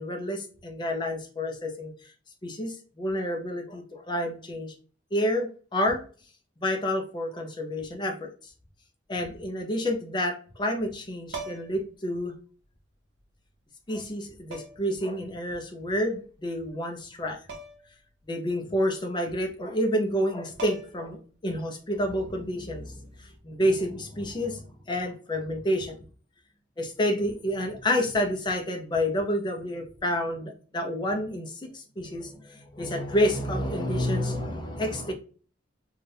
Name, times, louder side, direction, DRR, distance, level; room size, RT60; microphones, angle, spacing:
voice 1, 0.0-1.9 2.4-4.7 5.1-6.0 6.6-8.3 9.1-12.3 13.9-17.4 18.3-21.2 21.4-26.0 26.8-35.1, equal, 25° left, 4 dB, 0.5 m, -29 dB
sound 1, 11.3-11.9 13.2-13.3 14.5-15.0 17.5-17.9 18.2-18.3 20.2-20.3 20.6-21.2 23.1-23.4, right 3 dB, 60° right, 0.6 m, -40 dB
2.7 x 2.4 x 3.3 m, 0.40 s
head